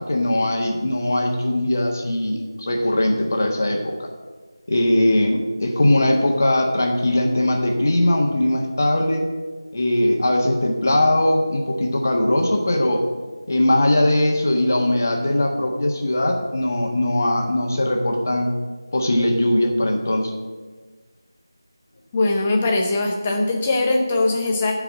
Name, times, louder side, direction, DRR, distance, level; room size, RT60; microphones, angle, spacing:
voice 1, 0.0-4.1 4.7-9.3 9.7-13.0 13.5-18.5 18.9-20.3, left 1 dB, 40° left, 2 dB, 1.3 m, -20 dB
voice 2, 22.1-24.7, left 2 dB, 10° left, 1 dB, 0.7 m, -21 dB
11.0 x 4.8 x 7.4 m, 1.4 s
figure-of-eight pair, 175°, 2 cm